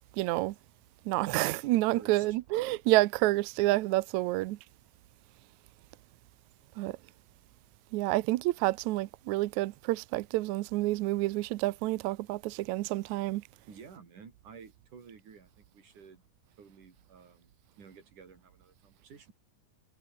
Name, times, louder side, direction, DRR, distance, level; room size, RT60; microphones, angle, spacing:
voice 1, 0.1-0.5 1.0-4.6 6.8-7.0 7.9-13.4, right 18 dB, 80° right, 1.7 m, -29 dB
voice 2, 1.9-2.3 13.7-16.2 16.6-17.5 17.8-19.3, right 6 dB, 60° right, 5.3 m, -52 dB
omnidirectional pair, 4.1 m